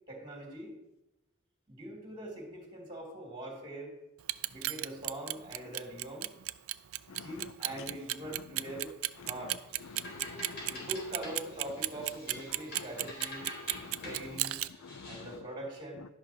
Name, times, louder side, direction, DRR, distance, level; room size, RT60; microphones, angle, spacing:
voice 1, 0.1-0.8 1.7-3.9 4.5-6.3 7.2-8.9 9.2-9.6 10.6-13.4 14.0-14.6 15.1-16.1, right 1 dB, 20° right, 2.7 m, -42 dB
Clock, 4.2-14.7, right 17 dB, 75° right, 0.4 m, -34 dB
sound 1, 9.7-15.4, left 1 dB, 50° left, 4.0 m, -47 dB
voice 2, 9.9-10.9 12.7-12.8 13.5-14.1 14.8-15.3, left 4 dB, 70° left, 0.4 m, -48 dB
12.0 x 10.5 x 2.9 m
head